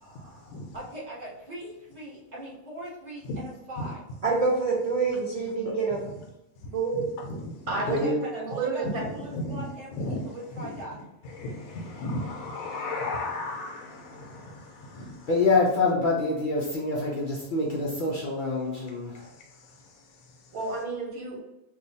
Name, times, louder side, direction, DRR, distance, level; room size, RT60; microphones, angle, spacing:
voice 1, 0.0-0.5 7.7-8.0 8.3-9.0 20.5-21.4, right 3 dB, 80° right, -2 dB, 1.5 m, -31 dB
voice 2, 0.7-4.0 7.8-11.0, right 1 dB, 30° right, -7 dB, 1.3 m, -40 dB
voice 3, 4.2-6.0 6.7-7.1, right 4 dB, 65° right, -3 dB, 0.3 m, -26 dB
voice 4, 6.9-7.5 9.0-9.6 9.9-10.2 10.6-10.7 11.3-15.3, left 2 dB, 85° left, 1 dB, 1.1 m, -35 dB
voice 5, 7.9-8.2 15.3-19.2, left 3 dB, 60° left, -3 dB, 0.5 m, -26 dB
3.1 x 2.3 x 3.9 m, 0.90 s
omnidirectional pair, 1.5 m